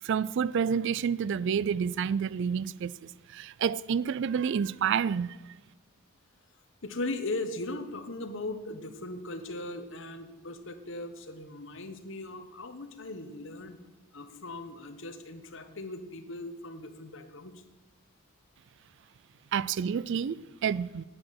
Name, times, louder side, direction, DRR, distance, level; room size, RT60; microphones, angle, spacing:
voice 1, 0.0-5.4 19.5-21.0, right 7 dB, 55° right, 0.3 m, -29 dB
voice 2, 6.8-13.8 14.1-17.6, left 2 dB, 60° left, 1.3 m, -38 dB
9.8 x 9.0 x 7.6 m
head